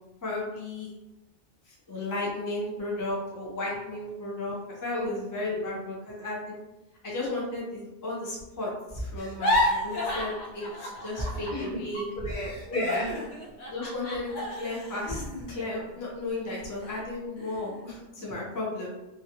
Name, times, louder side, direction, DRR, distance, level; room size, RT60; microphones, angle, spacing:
voice 1, 0.2-0.9 1.7-4.5 4.8-6.4 7.0-12.1 13.7-14.3 14.6-18.9, left 2 dB, 30° left, -4 dB, 0.4 m, -34 dB
voice 2, 5.4-5.8 11.5-11.8 12.2-13.2, left 1 dB, 50° left, -5 dB, 0.8 m, -33 dB
sound 1, 9.2-11.7 11.9-16.3 16.8-17.0 17.4-17.9, left 1 dB, 80° left, 1.0 m, -31 dB
2.3 x 2.2 x 2.8 m, 1.0 s
omnidirectional pair, 1.2 m